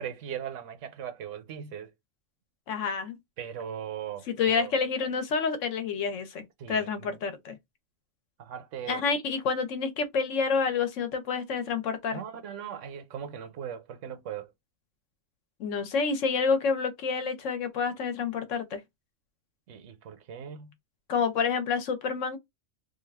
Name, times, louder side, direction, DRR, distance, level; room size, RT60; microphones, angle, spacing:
voice 1, 0.0-1.9 3.4-4.7 6.6-7.1 8.4-9.0 12.1-14.5 19.7-20.7, right 9 dB, 80° right, 1.0 m, -39 dB
voice 2, 2.7-3.2 4.3-7.6 8.9-12.2 15.6-18.8 21.1-22.4, left 5 dB, 90° left, 1.1 m, -28 dB
2.6 x 2.4 x 3.3 m
omnidirectional pair, 1.3 m